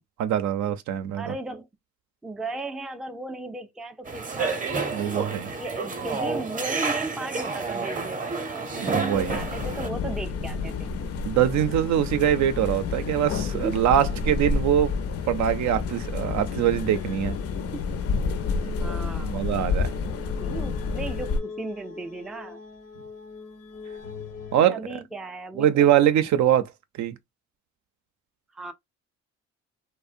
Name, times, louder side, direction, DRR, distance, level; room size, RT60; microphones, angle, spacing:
voice 1, 0.2-1.3 4.9-5.5 8.8-9.4 11.3-14.9 15.3-17.4 19.2-19.9 24.5-24.7 25.6-26.7 27.0-27.1, right 10 dB, 70° right, 0.5 m, -23 dB
voice 2, 1.2-1.7 2.2-5.3 5.6-10.9 13.5-13.9 17.7-17.9 18.8-19.3 20.4-22.6 24.6-25.9 28.5-28.7, right 2 dB, ahead, 0.3 m, -36 dB
sound 1, 4.1-9.9, right 4 dB, 25° right, 0.7 m, -30 dB
sound 2, 4.7-24.6, left 5 dB, 90° left, 1.0 m, -46 dB
sound 3, 9.1-21.4, left 4 dB, 50° left, 0.5 m, -29 dB
2.6 x 2.1 x 2.4 m
cardioid pair, 90°, 30 cm